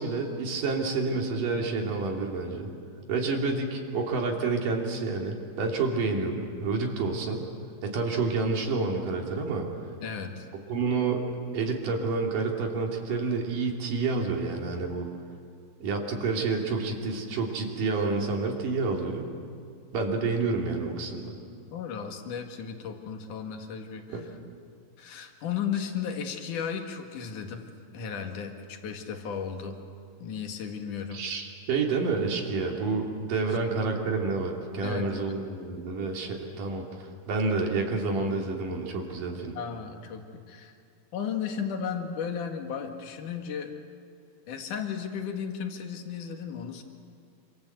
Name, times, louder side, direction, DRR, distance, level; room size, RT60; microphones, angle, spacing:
voice 1, 0.0-2.7 3.1-7.5 7.8-9.7 10.7-11.2 11.5-15.1 15.8-19.3 19.9-21.4 24.1-24.3 31.1-39.6, right 4 dB, 60° right, 1 dB, 4.4 m, -29 dB
voice 2, 10.0-10.5 21.7-24.1 25.0-27.6 27.9-29.8 30.2-31.2 33.5-33.6 34.8-35.3 39.5-40.7 41.1-43.7 44.5-46.8, left 7 dB, 60° left, 4 dB, 3.3 m, -34 dB
27.5 x 26.5 x 8.1 m, 2.3 s
omnidirectional pair, 4.3 m